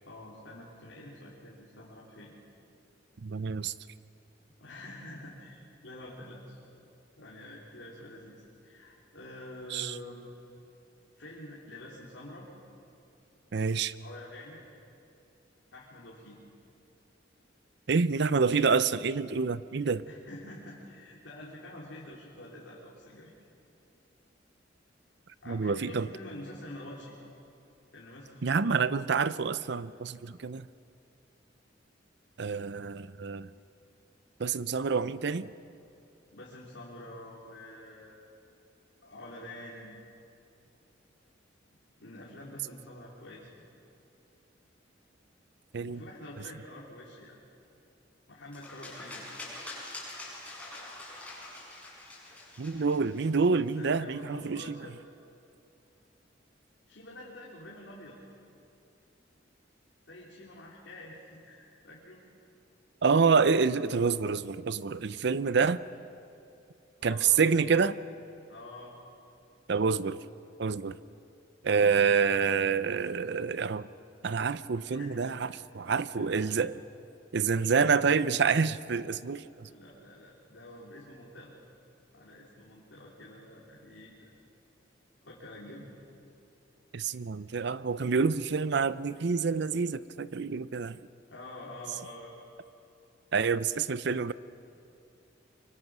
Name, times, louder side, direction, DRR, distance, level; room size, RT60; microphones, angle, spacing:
voice 1, 0.0-2.3 4.6-6.6 7.2-10.3 11.2-12.5 14.0-14.6 15.7-16.4 20.0-23.3 25.4-27.1 27.9-28.7 36.3-38.4 39.0-39.9 42.0-43.6 45.8-47.4 48.3-49.2 53.8-55.0 56.9-58.2 60.1-62.2 67.0-67.4 68.5-68.9 74.9-75.4 75.8-75.9 76.1-76.6 79.5-81.5 82.1-84.4 85.2-85.9 91.3-92.3, left 1 dB, 85° left, 3.3 m, -47 dB
voice 2, 3.2-3.7 9.7-9.9 13.5-13.9 17.9-20.0 25.5-26.1 28.4-30.7 32.4-33.5 34.4-35.5 45.7-46.0 52.6-54.8 63.0-65.8 67.0-68.0 69.7-70.2 70.6-71.0 71.6-73.9 74.2-76.7 77.3-79.7 86.9-91.0 93.3-94.3, right 5 dB, 65° right, 0.6 m, -27 dB
sound 1, 48.5-53.7, left 2 dB, 5° left, 6.9 m, -45 dB
24.5 x 24.5 x 6.2 m
head